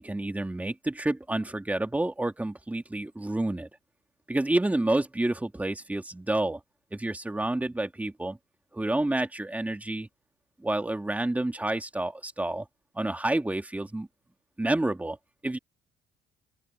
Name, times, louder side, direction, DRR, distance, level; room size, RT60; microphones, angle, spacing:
voice 1, 0.0-3.7 4.3-6.6 6.9-8.4 8.7-10.1 10.6-12.7 13.0-14.1 14.6-15.2 15.4-15.6, right 2 dB, 10° right, 2.1 m, -29 dB
open air
cardioid pair, 110°, 17 cm